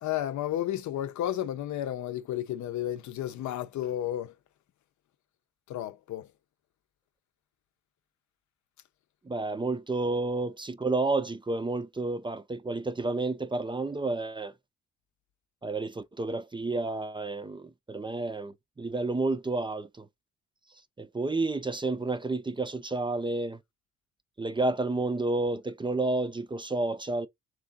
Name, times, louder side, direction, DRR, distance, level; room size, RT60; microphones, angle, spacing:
voice 1, 0.0-4.3 5.7-6.3, left 12 dB, 70° left, 0.7 m, -32 dB
voice 2, 9.2-14.5 15.6-20.1 21.0-23.6 24.4-27.3, right 2 dB, 15° right, 0.5 m, -30 dB
3.6 x 3.3 x 3.9 m
cardioid pair, 90°, 30 cm